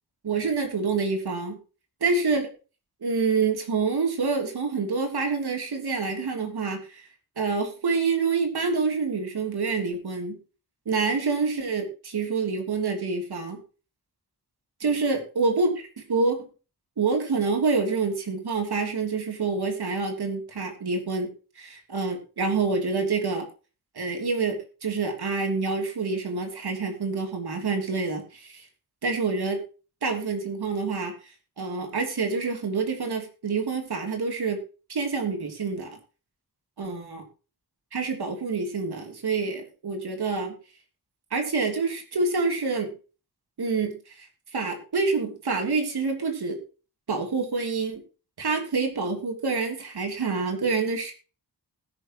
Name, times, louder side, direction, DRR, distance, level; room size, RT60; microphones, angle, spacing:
voice 1, 0.2-1.6 2.0-2.4 3.0-7.1 7.4-10.4 10.8-13.6 14.8-16.4 17.0-21.3 21.6-23.5 23.9-28.7 29.0-29.6 30.0-31.1 31.6-34.6 34.9-35.9 36.8-37.2 37.9-40.5 41.3-42.9 43.6-46.6 47.1-48.0 48.4-51.1, right 4 dB, 90° right, 3 dB, 3.2 m, -27 dB
20.5 x 6.8 x 3.0 m, 0.35 s
wide cardioid pair, 130°, 37 cm